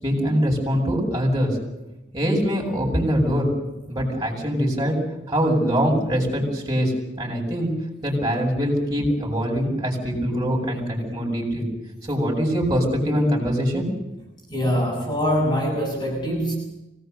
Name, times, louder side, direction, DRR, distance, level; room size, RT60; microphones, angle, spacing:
voice 1, 0.0-1.6 2.1-3.5 3.9-4.9 5.3-7.7 8.0-11.6 12.0-13.8, equal, 20° right, -2 dB, 7.7 m, -23 dB
voice 2, 14.5-16.5, equal, 25° left, -2 dB, 7.1 m, -23 dB
25.0 x 19.0 x 8.2 m, 0.95 s
head